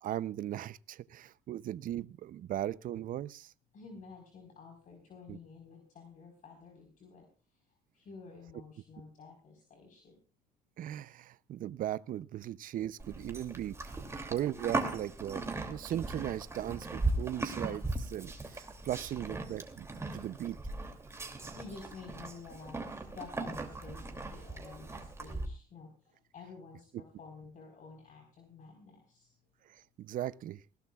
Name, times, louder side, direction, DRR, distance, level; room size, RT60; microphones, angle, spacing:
voice 1, 0.0-3.5 5.3-5.4 10.8-13.8 14.2-19.9 20.1-20.6 29.7-30.6, right 12 dB, 55° right, 18 dB, 0.6 m, -38 dB
voice 2, 3.7-7.2 7.9-10.1 20.0-20.2 21.5-29.3, left 4 dB, 50° left, 2 dB, 4.3 m, -51 dB
Livestock farm animals working animals, 13.0-25.5, right 2 dB, 15° right, 2.7 m, -38 dB
20.0 x 16.5 x 2.4 m, 0.37 s
cardioid pair, 110°, 17 cm